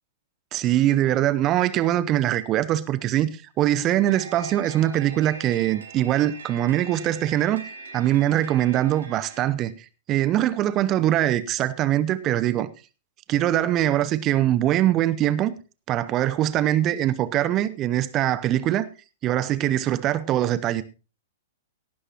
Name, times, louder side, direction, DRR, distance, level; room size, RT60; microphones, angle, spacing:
voice 1, 0.5-7.6 7.9-9.7 10.1-12.7 13.3-15.5 15.9-18.9 19.2-20.8, right 13 dB, 30° right, 0.8 m, -22 dB
sound 1, 4.1-9.4, right 5 dB, 65° right, 2.8 m, -42 dB
18.0 x 11.0 x 3.0 m
figure-of-eight pair, 105°, 0 cm